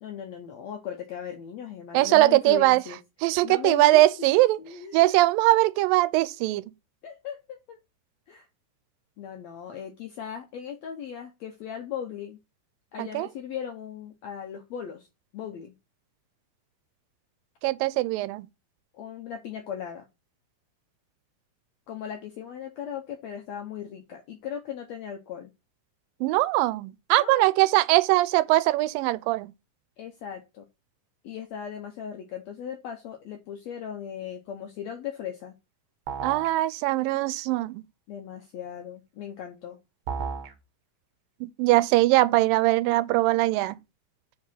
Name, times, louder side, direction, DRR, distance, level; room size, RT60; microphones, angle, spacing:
voice 1, 0.0-3.0 3.4-5.2 7.0-7.8 8.3-8.5 9.2-12.4 12.9-15.1 15.3-15.7 18.9-20.1 21.9-25.5 27.2-27.5 30.0-30.6 31.2-35.5 38.1-39.8, left 8 dB, 75° left, 1.6 m, -38 dB
voice 2, 1.9-2.8 3.2-4.6 4.9-6.6 13.0-13.3 17.6-18.5 26.2-29.5 36.2-37.8 41.4-43.8, right 18 dB, 85° right, 2.2 m, -21 dB
sound 1, 36.1-36.5 40.1-40.5, right 6 dB, 60° right, 2.0 m, -32 dB
5.2 x 4.7 x 5.5 m
omnidirectional pair, 4.0 m